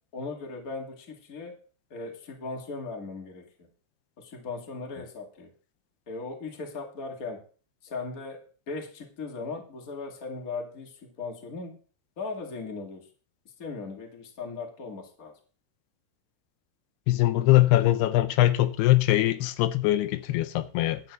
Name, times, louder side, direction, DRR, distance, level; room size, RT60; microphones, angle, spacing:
voice 1, 0.1-1.6 1.9-3.5 4.2-5.5 6.1-7.4 7.8-11.8 12.2-13.1 13.6-15.4, left 3 dB, 30° left, 1.8 m, -38 dB
voice 2, 17.1-21.0, left 15 dB, 85° left, 2.8 m, -22 dB
12.0 x 4.4 x 8.1 m
omnidirectional pair, 4.6 m